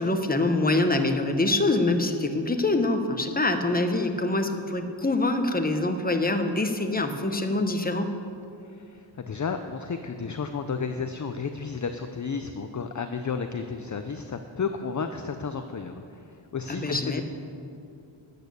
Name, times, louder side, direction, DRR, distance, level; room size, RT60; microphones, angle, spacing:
voice 1, 0.0-8.1 16.7-17.2, left 2 dB, 20° left, 6 dB, 1.0 m, -25 dB
voice 2, 8.7-17.2, left 5 dB, 40° left, 7 dB, 0.6 m, -32 dB
13.0 x 8.6 x 6.8 m, 2.5 s
wide cardioid pair, 90°, 49 cm